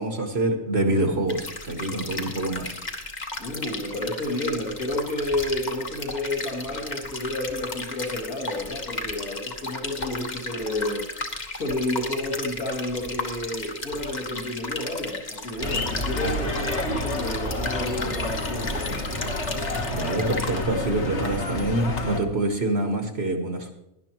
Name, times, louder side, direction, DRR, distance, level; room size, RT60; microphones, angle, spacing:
voice 1, 0.0-2.8 19.9-23.7, right 2 dB, 45° right, 5 dB, 1.3 m, -26 dB
sound 1, 1.3-20.7, left 3 dB, 30° left, 1.2 m, -35 dB
voice 2, 3.4-11.1 11.5-19.0, left 1 dB, 70° left, -4 dB, 2.6 m, -30 dB
sound 2, 15.6-22.2, left 1 dB, 50° left, 1.7 m, -29 dB
17.5 x 11.0 x 3.0 m, 0.85 s
omnidirectional pair, 1.6 m